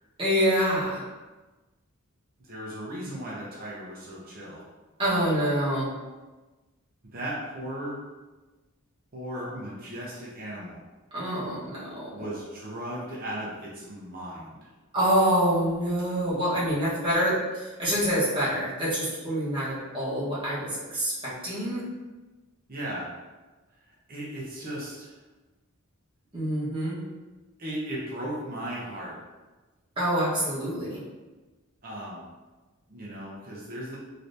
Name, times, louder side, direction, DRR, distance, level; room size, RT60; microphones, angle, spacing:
voice 1, 0.2-1.0 5.0-5.9 11.1-12.3 14.9-21.8 26.3-27.0 30.0-31.0, equal, 25° right, -9 dB, 1.1 m, -26 dB
voice 2, 2.4-4.6 7.1-8.0 9.1-10.8 12.1-14.7 22.7-23.1 24.1-25.1 27.6-29.2 31.8-32.3 32.9-34.0, right 1 dB, 40° right, -6 dB, 0.7 m, -36 dB
3.2 x 2.9 x 2.6 m, 1.2 s
head